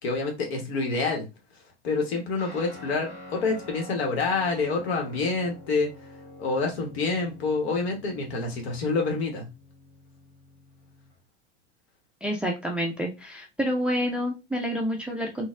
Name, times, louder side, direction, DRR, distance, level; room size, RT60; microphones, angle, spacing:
voice 1, 0.0-1.3 1.8-5.9 6.4-9.5, left 3 dB, 65° left, 2 dB, 1.2 m, -27 dB
Guitar, 2.4-11.2, left 1 dB, 40° left, 1.6 m, -47 dB
voice 2, 12.2-15.5, equal, 5° right, 1 dB, 0.4 m, -28 dB
3.9 x 2.3 x 2.4 m, 0.26 s
figure-of-eight pair, 85°, 34 cm